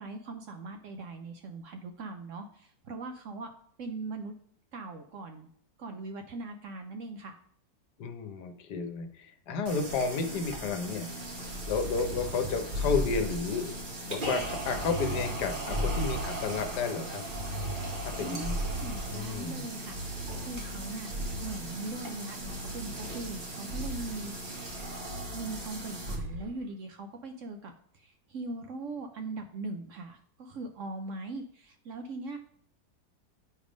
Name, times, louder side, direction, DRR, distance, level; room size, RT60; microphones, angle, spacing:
voice 1, 0.0-3.5 3.8-4.3 4.7-5.5 5.8-7.3 18.2-21.1 21.4-24.7 25.3-32.4, right 3 dB, 65° right, 5 dB, 0.8 m, -40 dB
voice 2, 8.0-11.1 11.7-13.7 14.0-17.2 18.0-18.6 19.1-19.6, left 5 dB, 75° left, 7 dB, 1.4 m, -32 dB
sound 1, 9.6-26.2, right 1 dB, 35° right, 1.2 m, -39 dB
sound 2, 11.4-13.9 14.4-16.8 17.3-19.4 19.9-21.8 22.4-23.4 23.7-24.2 25.1-25.8 26.1-26.5, equal, 85° right, 0.4 m, -37 dB
8.8 x 3.5 x 5.1 m, 0.64 s
omnidirectional pair, 1.8 m